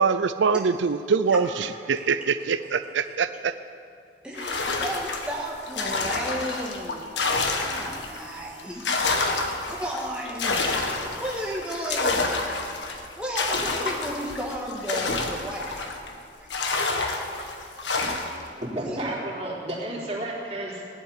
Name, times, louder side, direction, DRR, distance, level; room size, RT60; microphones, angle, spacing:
voice 1, 0.0-3.5, right 5 dB, 85° right, 11 dB, 0.4 m, -24 dB
voice 2, 4.2-9.0 9.7-10.7 11.2-12.4 13.1-15.9 16.4-16.5 18.8-19.0, equal, 5° right, -4 dB, 1.7 m, -34 dB
sound 1, 4.4-8.2 8.6-16.1 16.5-18.5, left 3 dB, 80° left, 1.6 m, -28 dB
voice 3, 18.6-20.8, right 1 dB, 35° right, -5 dB, 3.6 m, -31 dB
17.5 x 8.2 x 9.7 m, 2.5 s
head